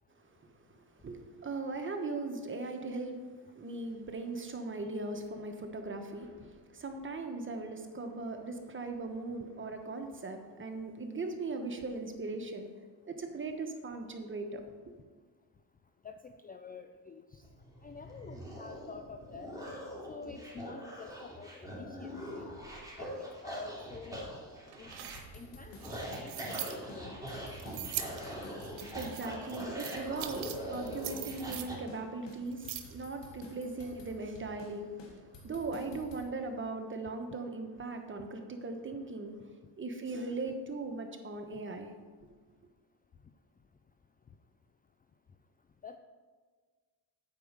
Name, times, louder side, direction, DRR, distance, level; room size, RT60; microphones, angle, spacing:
voice 1, 0.7-12.7 13.0-14.9 28.5-39.4 39.8-41.9 42.2-42.3, right 3 dB, 25° right, 5 dB, 1.2 m, -39 dB
voice 2, 16.0-17.4 17.8-19.5 20.1-22.5 23.0-24.3 24.8-25.0 25.3-27.3 45.8-46.0, left 5 dB, 20° left, 7 dB, 0.4 m, -48 dB
sound 1, 17.4-31.8, equal, 10° right, 2.7 m, -43 dB
sound 2, 24.7-26.8 27.6-28.2 28.6-30.6 30.9-31.7 32.3-33.0 33.4-33.5, right 13 dB, 85° right, 0.8 m, -41 dB
sound 3, 25.0-26.6 26.9-27.0 27.3-29.3 29.6-31.6 31.9-32.0 32.3-34.7 35.0-36.2, left 3 dB, 70° left, 2.0 m, -51 dB
8.6 x 4.7 x 6.7 m, 1.5 s
cardioid pair, 90°, 44 cm